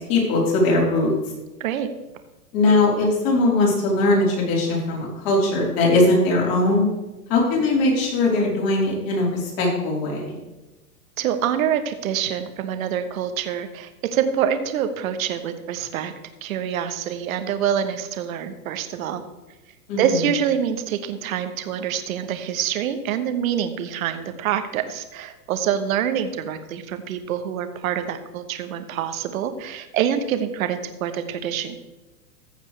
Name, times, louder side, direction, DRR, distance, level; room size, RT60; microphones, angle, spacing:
voice 1, 0.1-1.1 2.5-6.9 7.3-10.4 19.9-20.0, left 2 dB, 40° left, -3 dB, 4.0 m, -20 dB
voice 2, 11.2-16.1 16.4-19.2 20.0-31.8, right 9 dB, 60° right, 8 dB, 1.1 m, -26 dB
14.5 x 7.2 x 3.3 m, 1.1 s
hypercardioid pair, 135°, 47 cm